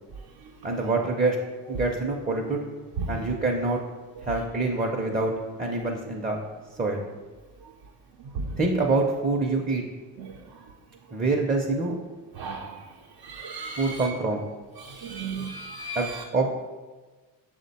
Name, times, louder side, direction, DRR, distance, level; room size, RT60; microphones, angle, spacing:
voice 1, 0.6-1.4 1.7-2.6 3.1-3.8 4.2-5.3 5.6-6.4 6.8-7.0 8.6-9.8 11.1-12.0 13.8-14.4 15.9-16.5, right 3 dB, 20° right, 0 dB, 0.5 m, -25 dB
voice 2, 12.4-12.8 13.2-14.1 14.8-16.2, right 4 dB, 75° right, 0 dB, 0.6 m, -35 dB
6.2 x 2.1 x 4.0 m, 1.3 s
cardioid pair, 65°, 41 cm